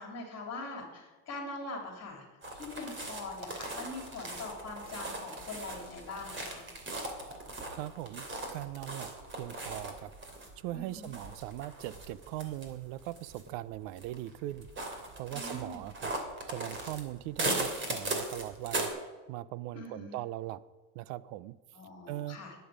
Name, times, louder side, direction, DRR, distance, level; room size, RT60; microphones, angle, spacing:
voice 1, 0.0-2.2 2.6-6.6 10.7-11.1 15.3-15.8 19.7-20.2 21.7-22.5, left 2 dB, 30° left, 1 dB, 3.5 m, -42 dB
sound 1, 2.4-18.9, right 2 dB, 25° right, 2.7 m, -39 dB
voice 2, 7.7-10.1 10.6-16.1 16.5-18.9 19.3-20.6 20.9-21.5 22.1-22.4, right 15 dB, 90° right, 17 dB, 0.8 m, -40 dB
21.5 x 9.4 x 5.1 m, 1.2 s
cardioid pair, 145°, 48 cm